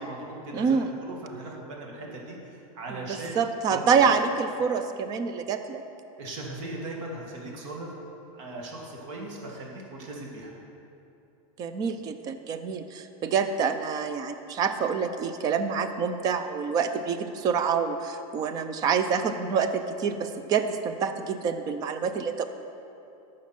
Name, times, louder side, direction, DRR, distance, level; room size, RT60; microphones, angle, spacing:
voice 1, 0.0-4.1 6.2-7.9 8.3-10.5, right 2 dB, 55° right, -1 dB, 1.8 m, -39 dB
voice 2, 0.5-0.9 3.4-5.8 11.6-22.4, right 6 dB, 20° right, 9 dB, 0.4 m, -27 dB
12.5 x 6.3 x 5.8 m, 2.8 s
supercardioid pair, 170°, 19 cm